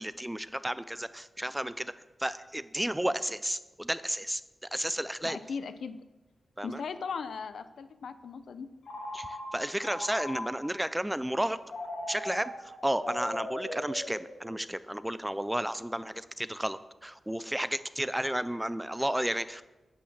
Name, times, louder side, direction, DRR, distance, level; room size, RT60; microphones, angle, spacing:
voice 1, 0.0-1.9 2.2-4.4 4.7-5.4 6.6-6.8 9.1-11.6 12.1-19.6, right 1 dB, 5° right, 14 dB, 0.3 m, -32 dB
voice 2, 5.2-6.0 6.6-8.7, left 5 dB, 75° left, 11 dB, 0.7 m, -38 dB
Telephone, 8.8-10.8 11.7-14.7, left 1 dB, 55° left, 2.1 m, -39 dB
8.7 x 8.6 x 7.3 m, 1.1 s
wide cardioid pair, 180°, 0 cm